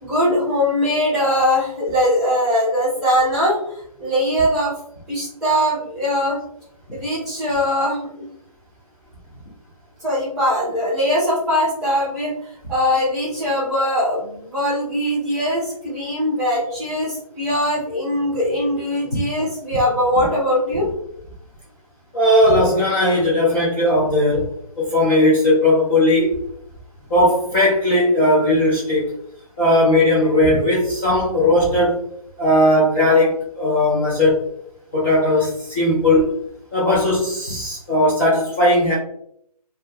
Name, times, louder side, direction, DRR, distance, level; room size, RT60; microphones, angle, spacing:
voice 1, 0.0-4.8 5.1-6.4 6.9-8.3 10.0-12.3 12.7-20.9, equal, 5° right, -9 dB, 0.8 m, -21 dB
voice 2, 22.1-24.5 24.8-26.4 27.1-29.1 29.6-32.0 32.4-34.4 34.9-36.3 36.7-38.9, left 1 dB, 20° left, -8 dB, 0.4 m, -17 dB
2.4 x 2.2 x 2.7 m, 0.70 s
figure-of-eight pair, 155°, 19 cm